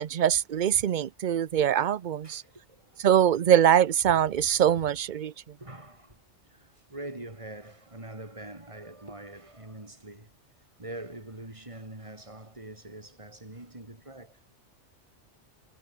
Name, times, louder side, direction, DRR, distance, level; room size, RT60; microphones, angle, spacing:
voice 1, 0.0-2.4 3.0-5.3, right 10 dB, 50° right, 0.7 m, -23 dB
voice 2, 2.2-3.1 5.2-10.3 10.8-14.4, right 1 dB, 25° right, 4.2 m, -44 dB
omnidirectional pair, 1.2 m